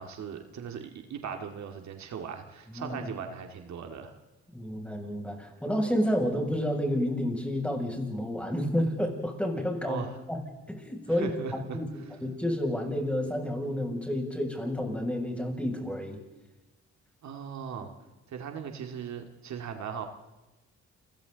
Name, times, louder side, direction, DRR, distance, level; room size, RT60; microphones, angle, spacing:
voice 1, 0.0-4.1 9.8-10.2 11.1-12.2 17.2-17.9 18.3-20.1, right 7 dB, 65° right, 5 dB, 2.3 m, -39 dB
voice 2, 2.7-3.0 4.5-10.4 10.7-11.3 11.7-11.9 12.2-16.2, equal, 5° left, 1 dB, 7.1 m, -30 dB
29.5 x 23.0 x 4.0 m, 1.1 s
cardioid pair, 90°, 30 cm